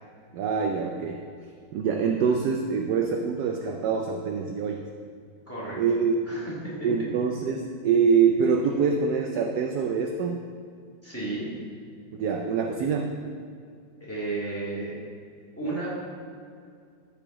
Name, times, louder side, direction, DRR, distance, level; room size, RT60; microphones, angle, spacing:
voice 1, 0.3-1.2 1.7-4.8 5.7-6.1 6.8-10.4 12.1-13.1, right 6 dB, 70° right, 2 dB, 1.0 m, -25 dB
voice 2, 5.5-5.8 6.3-6.9 11.0-11.5 14.0-15.0 15.6-15.9, right 2 dB, 5° left, -8 dB, 2.2 m, -33 dB
14.0 x 5.1 x 3.7 m, 2.3 s
omnidirectional pair, 2.1 m